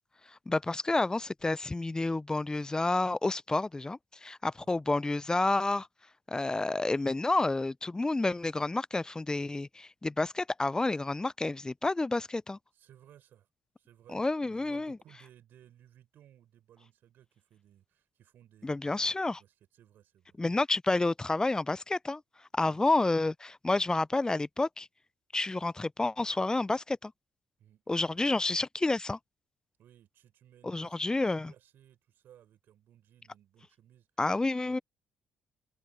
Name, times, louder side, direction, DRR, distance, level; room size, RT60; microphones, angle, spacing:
voice 1, 0.3-5.9 6.3-12.6 14.1-15.0 18.6-19.4 20.4-22.2 22.5-24.9 25.3-27.1 27.9-29.2 30.6-31.5 34.2-34.8, left 2 dB, 20° left, 0.7 m, -29 dB
voice 2, 12.7-13.5 13.8-20.4 22.6-22.9 27.6-28.4 29.8-34.1 34.6-34.8, right 11 dB, 65° right, 6.3 m, -60 dB
hypercardioid pair, 45°, 4 cm